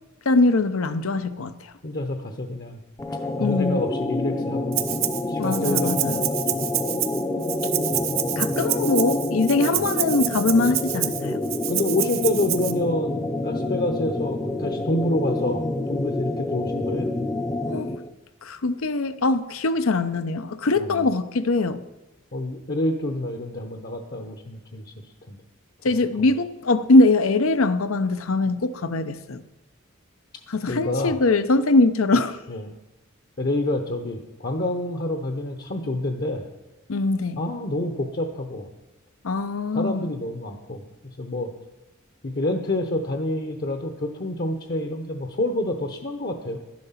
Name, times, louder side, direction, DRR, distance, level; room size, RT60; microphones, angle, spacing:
voice 1, 0.3-1.5 3.4-3.8 5.4-6.2 8.4-11.4 17.7-17.9 18.4-21.8 25.8-29.4 30.5-32.4 36.9-37.4 39.2-40.1, left 2 dB, 85° left, 0.7 m, -22 dB
voice 2, 1.8-2.8 3.4-5.0 5.3-6.2 6.5-6.7 7.9-8.1 11.4-17.1 20.8-21.1 22.3-24.8 25.3-25.4 30.7-31.2 32.5-32.7 33.4-36.5 37.4-38.7 39.7-41.5 42.2-46.6, left 1 dB, 45° left, 0.9 m, -28 dB
sound 1, 3.0-18.1, left 2 dB, 15° left, 0.5 m, -28 dB
Rattle (instrument), 4.7-5.2 5.5-12.7, right 14 dB, 85° right, 0.9 m, -28 dB
12.0 x 10.5 x 5.7 m
head